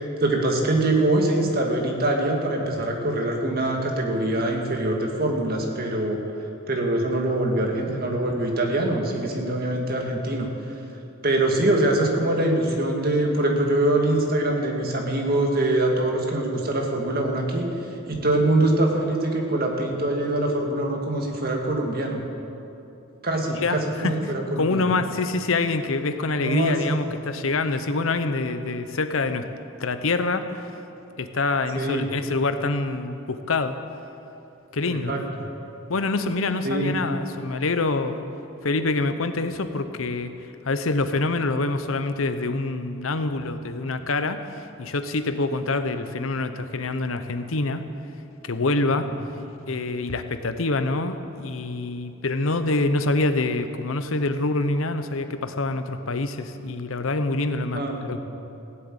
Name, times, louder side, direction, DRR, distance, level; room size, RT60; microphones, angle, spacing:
voice 1, 0.2-6.2 6.7-10.5 11.2-17.7 18.1-22.2 23.2-24.9 26.4-27.0 31.8-32.1 34.9-35.5 36.6-36.9 57.7-58.2, right 1 dB, 45° right, 1 dB, 2.0 m, -24 dB
voice 2, 23.6-24.2 24.6-29.5 29.8-30.6 31.2-33.8 34.7-35.1 35.9-38.2 38.6-40.3 40.6-44.4 44.8-47.8 48.4-49.1 49.7-58.2, left 3 dB, 85° left, 9 dB, 0.9 m, -26 dB
16.5 x 7.9 x 8.9 m, 2.8 s
head